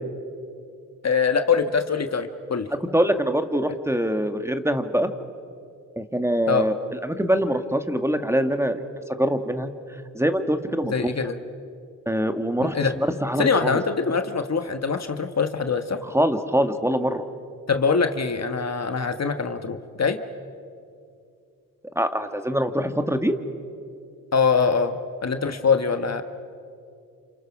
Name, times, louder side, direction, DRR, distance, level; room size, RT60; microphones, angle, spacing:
voice 1, 1.0-2.7 6.5-6.7 10.9-11.4 12.6-12.9 13.4-16.0 17.7-20.2 24.3-26.2, left 5 dB, 45° left, 8 dB, 1.5 m, -23 dB
voice 2, 2.9-5.1 6.0-8.8 9.2-9.7 10.1-11.1 12.1-13.8 16.0-17.2 22.0-23.4, equal, 5° right, 8 dB, 1.9 m, -24 dB
29.0 x 27.5 x 6.1 m, 2.5 s
cardioid pair, 55°, 35 cm